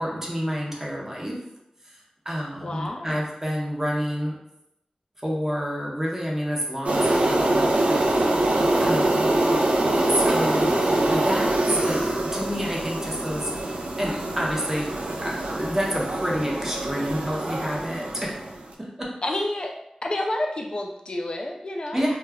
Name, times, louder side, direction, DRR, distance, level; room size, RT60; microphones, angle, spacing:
voice 1, 0.0-1.4 1.8-4.4 5.2-8.5 8.8-9.6 10.0-18.4 18.8-19.1 21.9-22.1, equal, 20° right, -3 dB, 0.6 m, -29 dB
voice 2, 2.6-3.2 19.2-19.7 20.0-22.0, left 1 dB, 45° left, 1 dB, 0.4 m, -29 dB
sound 1, 6.8-18.6, right 1 dB, 70° right, 0.4 m, -24 dB
2.2 x 2.0 x 3.4 m, 0.82 s
wide cardioid pair, 70°, 2 cm